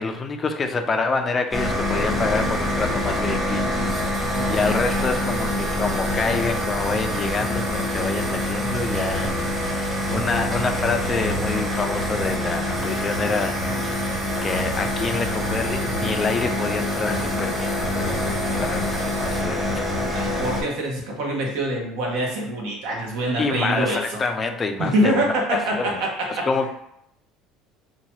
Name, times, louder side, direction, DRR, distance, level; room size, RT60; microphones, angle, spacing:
voice 1, 0.0-3.6 4.0-14.1 14.4-19.9 20.3-20.4 23.4-26.0 26.3-26.7, left 4 dB, 30° left, 5 dB, 0.4 m, -27 dB
sound 1, 1.5-20.6, left 1 dB, 10° right, 0.9 m, -25 dB
Insect, 2.1-19.4, right 4 dB, 45° right, 0.5 m, -41 dB
voice 2, 20.1-24.0 24.8-26.5, right 1 dB, 75° right, 0 dB, 0.9 m, -25 dB
2.8 x 2.3 x 2.9 m, 0.75 s
supercardioid pair, 105°, 0 cm